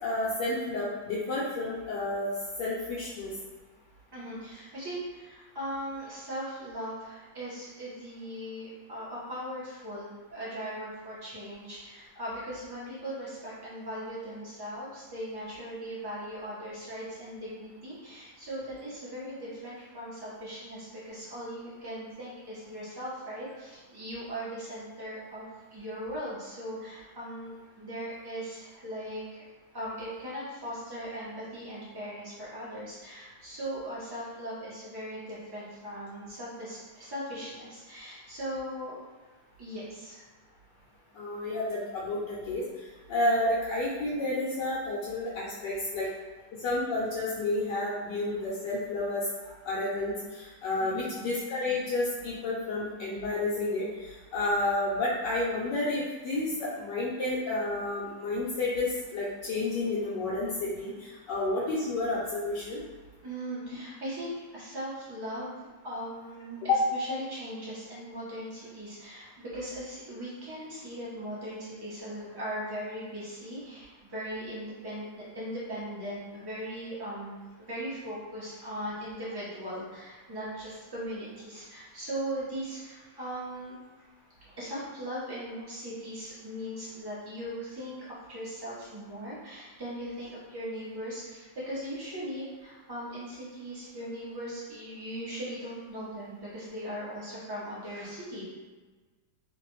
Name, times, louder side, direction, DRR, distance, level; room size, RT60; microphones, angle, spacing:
voice 1, 0.0-2.3 2.6-3.3 41.2-42.6 43.1-46.1 46.6-49.2 49.6-53.8 54.3-62.8 66.7-66.8, left 2 dB, 75° left, -8 dB, 1.3 m, -30 dB
voice 2, 4.1-25.4 25.7-29.4 29.7-38.9 39.6-40.2 50.8-51.3 63.2-83.8 84.6-98.4, equal, 40° right, -9 dB, 0.3 m, -39 dB
3.1 x 2.2 x 3.0 m, 1.3 s
omnidirectional pair, 1.9 m